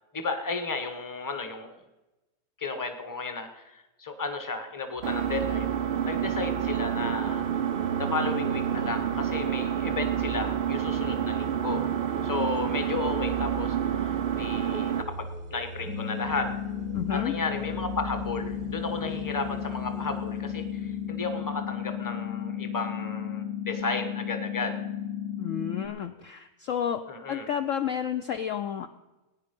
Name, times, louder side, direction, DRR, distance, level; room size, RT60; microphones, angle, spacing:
voice 1, 0.1-1.8 2.6-5.7 6.0-7.4 8.0-11.9 12.2-16.5 17.1-24.8 27.1-27.5, left 3 dB, 15° left, 8 dB, 1.0 m, -33 dB
sound 1, 5.0-22.4, right 5 dB, 45° right, 0.7 m, -41 dB
Engine, 5.0-15.0, right 9 dB, 80° right, 0.5 m, -29 dB
sound 2, 15.9-25.9, left 9 dB, 80° left, 2.0 m, -34 dB
voice 2, 16.9-17.3 25.4-27.0 27.3-28.9, left 8 dB, 65° left, 7 dB, 0.9 m, -31 dB
18.5 x 9.8 x 5.3 m, 1.1 s
omnidirectional pair, 1.8 m